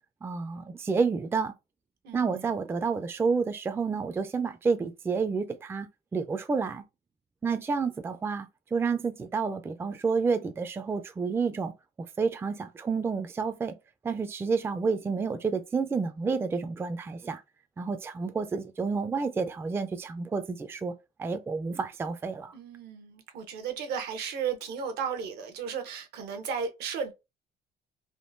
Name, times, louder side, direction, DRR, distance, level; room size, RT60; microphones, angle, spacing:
voice 1, 0.2-1.5 2.1-6.8 7.4-11.7 12.2-13.8 14.0-17.4 17.8-20.9 21.2-22.5, right 5 dB, 15° right, 0.3 m, -29 dB
voice 2, 2.0-2.5 22.5-27.1, right 6 dB, 75° right, 0.7 m, -34 dB
3.6 x 2.2 x 2.5 m
cardioid pair, 110°, 17 cm